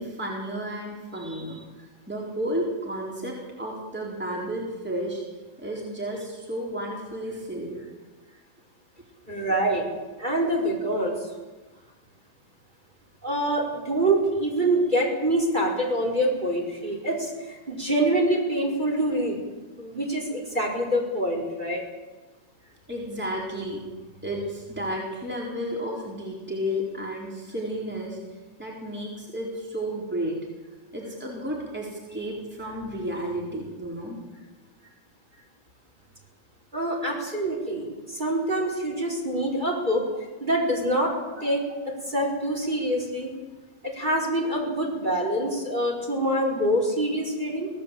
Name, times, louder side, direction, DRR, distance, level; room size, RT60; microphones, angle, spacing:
voice 1, 0.0-5.2 5.6-7.8 22.9-23.8 24.2-28.2 28.6-30.4 30.9-34.2 41.4-41.5, equal, 5° right, -2 dB, 4.3 m, -32 dB
voice 2, 9.3-9.9 10.2-11.3 13.2-19.4 19.8-21.8 36.7-40.1 40.4-41.1 41.4-43.3 43.9-47.7, right 1 dB, 25° right, -1 dB, 5.3 m, -25 dB
25.5 x 17.5 x 8.5 m, 1.2 s
omnidirectional pair, 1.9 m